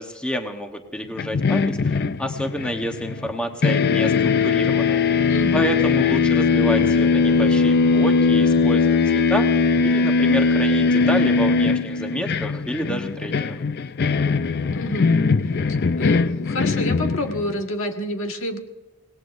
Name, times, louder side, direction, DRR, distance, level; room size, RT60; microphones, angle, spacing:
voice 1, 0.0-5.0 5.5-13.6, equal, 5° left, 4 dB, 1.1 m, -29 dB
sound 1, 1.2-3.4 3.6-17.6, left 4 dB, 50° left, 0.5 m, -20 dB
voice 2, 5.3-5.6 14.7-15.1 16.0-18.6, left 1 dB, 65° left, 3 dB, 1.8 m, -28 dB
26.0 x 18.5 x 2.6 m, 1.1 s
head